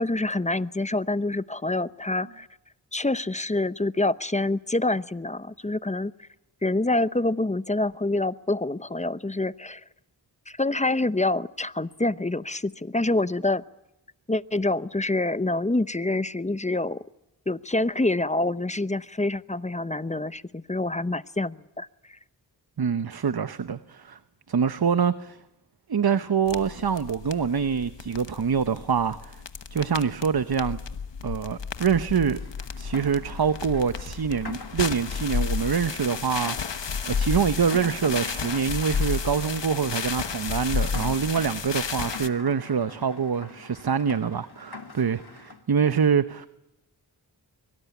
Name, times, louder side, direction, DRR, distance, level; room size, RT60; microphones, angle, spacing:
voice 1, 0.0-2.5 2.9-6.3 6.6-9.8 10.5-13.6 14.3-17.0 17.5-21.9, left 2 dB, 15° left, 0.8 m, -26 dB
voice 2, 22.8-24.2 24.5-25.4 25.9-29.4 29.7-30.8 31.2-32.4 32.8-46.5, right 6 dB, 60° right, 0.9 m, -25 dB
sound 1, 26.5-42.3, left 6 dB, 90° left, 1.2 m, -32 dB
Rain, 32.3-45.6, left 4 dB, 65° left, 2.4 m, -44 dB
24.0 x 23.0 x 8.3 m
cardioid pair, 40°, 42 cm